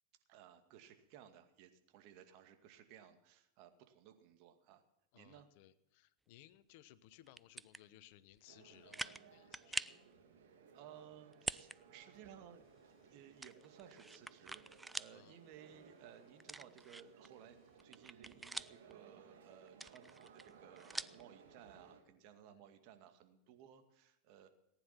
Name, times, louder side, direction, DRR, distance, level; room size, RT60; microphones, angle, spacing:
voice 1, 0.3-4.8 5.1-5.5 10.7-12.6 13.1-17.6 17.8-24.5, right 9 dB, 55° right, 7 dB, 2.2 m, -59 dB
voice 2, 5.1-9.9 15.1-15.4 22.5-22.7, left 13 dB, 60° left, 15 dB, 1.0 m, -62 dB
sound 1, 7.3-7.8 8.4-8.5 8.9-9.2 9.5-10.0 11.3-11.8 12.1-12.2 13.4-15.2 15.5-15.6 16.4-17.3 17.7-18.9 19.7-21.2, right 2 dB, 10° right, 0.5 m, -45 dB
sound 2, 8.5-22.0, right 6 dB, 70° right, 3.0 m, -62 dB
sound 3, 12.6-17.8, left 4 dB, 35° left, 5.3 m, -78 dB
19.0 x 10.0 x 5.9 m, 0.86 s
hypercardioid pair, 95°, 0 cm